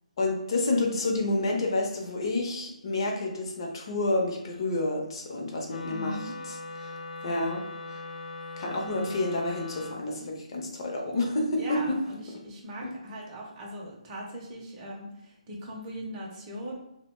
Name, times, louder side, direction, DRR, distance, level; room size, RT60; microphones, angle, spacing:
voice 1, 0.2-6.2 6.4-8.1 8.6-12.0 12.8-12.9, left 2 dB, 40° left, 1 dB, 0.6 m, -29 dB
Wind instrument woodwind instrument, 5.6-10.0, left 3 dB, 90° left, 0.4 m, -40 dB
voice 2, 5.9-6.3 7.3-7.5 11.6-16.8, equal, 20° right, -4 dB, 0.5 m, -40 dB
2.8 x 2.1 x 3.0 m, 0.85 s
hypercardioid pair, 165°, 4 cm